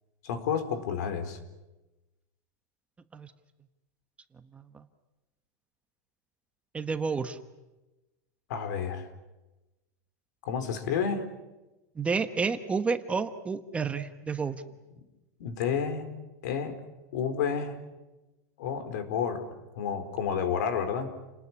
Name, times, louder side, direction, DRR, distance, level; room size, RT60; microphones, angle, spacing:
voice 1, 0.2-1.4 8.5-9.1 10.4-11.2 15.4-16.1 16.4-16.8 17.1-17.8 18.6-19.4 19.8-21.1, left 7 dB, 75° left, 9 dB, 4.3 m, -30 dB
voice 2, 4.5-4.8 6.7-7.4 11.9-14.6, right 5 dB, 15° right, 9 dB, 1.2 m, -30 dB
29.5 x 20.0 x 9.8 m, 1.1 s
supercardioid pair, 155°, 9 cm